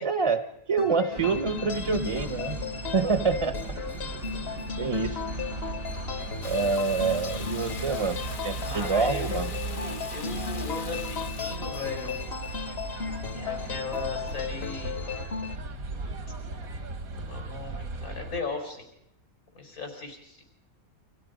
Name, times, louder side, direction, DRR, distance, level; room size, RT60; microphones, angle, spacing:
voice 1, 0.0-2.6 2.9-3.6 4.8-5.2 6.4-9.5, right 4 dB, 25° right, 10 dB, 0.8 m, -27 dB
sound 1, 0.8-15.6, left 7 dB, 50° left, 1.3 m, -36 dB
sound 2, 1.2-18.4, right 3 dB, 80° right, 2.2 m, -37 dB
Water tap faucet / Bathtub (filling or washing), 6.4-11.5, left 5 dB, 70° left, 1.9 m, -43 dB
voice 2, 8.6-12.2 13.3-15.0 17.2-18.9 19.5-20.4, left 3 dB, 85° left, 4 dB, 5.5 m, -37 dB
30.0 x 25.5 x 5.2 m, 0.79 s
omnidirectional pair, 1.5 m